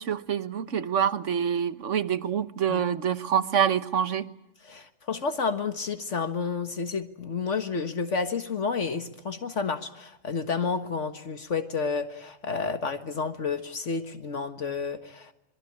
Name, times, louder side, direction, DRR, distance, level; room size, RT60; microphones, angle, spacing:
voice 1, 0.0-4.3, right 8 dB, 70° right, 1.5 m, -26 dB
voice 2, 4.6-15.3, left 5 dB, 65° left, 1.9 m, -30 dB
27.0 x 22.5 x 8.7 m
omnidirectional pair, 1.3 m